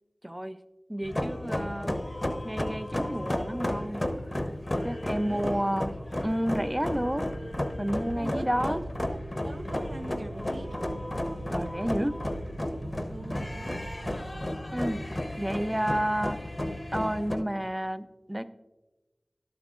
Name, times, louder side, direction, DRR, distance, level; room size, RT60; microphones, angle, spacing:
voice 1, 0.2-0.6 0.9-2.0 2.4-4.1 4.4-4.5 4.8-5.9 6.2-7.3 7.8-8.8 11.5-12.2 14.7-15.0 15.4-16.4 16.9-18.5, equal, 10° right, 11 dB, 0.5 m, -30 dB
sound 1, 1.0-17.4, left 1 dB, 30° left, 0.7 m, -33 dB
voice 2, 5.2-5.8 8.1-8.8 9.4-10.8 13.1-13.8, right 1 dB, 65° right, 4 dB, 0.8 m, -41 dB
sound 2, 6.7-14.5, right 3 dB, 90° right, 0.4 m, -44 dB
12.0 x 11.0 x 2.4 m, 1.1 s
wide cardioid pair, 50°, 0 cm